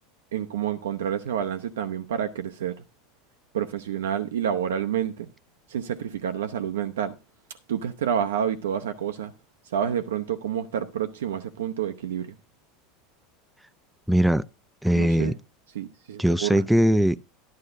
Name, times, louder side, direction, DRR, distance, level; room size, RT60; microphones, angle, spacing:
voice 1, 0.3-2.8 3.5-5.3 5.7-7.2 7.7-9.3 9.6-12.3 15.0-15.3 15.7-16.6, right 9 dB, 75° right, 0.7 m, -29 dB
voice 2, 14.1-14.4 14.8-15.4 16.2-17.3, equal, 5° right, 0.4 m, -20 dB
11.5 x 11.5 x 2.6 m
hypercardioid pair, 80°, 0 cm